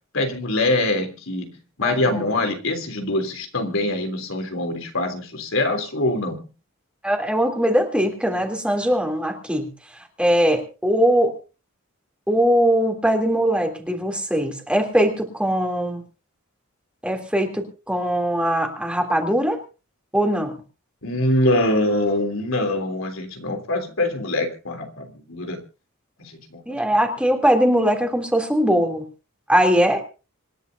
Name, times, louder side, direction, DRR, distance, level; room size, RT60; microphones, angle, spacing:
voice 1, 0.1-6.4 21.0-25.6 26.2-26.8, left 1 dB, 75° left, 4 dB, 3.4 m, -24 dB
voice 2, 1.8-2.2 7.0-9.7 10.2-11.3 12.3-16.0 17.0-19.6 20.1-20.5 26.7-29.1 29.5-30.0, equal, 5° right, 3 dB, 3.1 m, -21 dB
26.5 x 11.5 x 2.8 m, 0.34 s
head